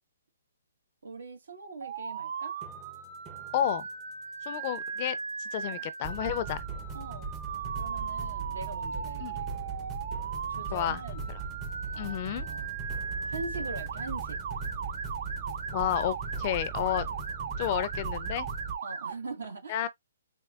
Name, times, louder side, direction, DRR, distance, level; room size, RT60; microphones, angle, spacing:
voice 1, 1.0-2.5 5.7-5.8 6.9-7.3 7.8-9.5 10.5-11.2 11.9-12.8 13.2-14.4 16.8-16.9 18.8-19.8, right 3 dB, 90° right, 1.4 m, -42 dB
Motor vehicle (road) / Siren, 1.8-19.1, right 6 dB, 70° right, 2.8 m, -38 dB
sound 1, 2.6-3.8 6.0-18.7, right 4 dB, 20° right, 0.5 m, -39 dB
voice 2, 3.5-3.9 4.5-6.6 9.2-9.4 10.7-11.0 11.3-11.4 12.0-12.5 15.7-17.1 17.6-18.5 19.7-19.9, left 10 dB, 35° left, 0.4 m, -31 dB
4.4 x 2.3 x 2.4 m
hypercardioid pair, 160°, 0 cm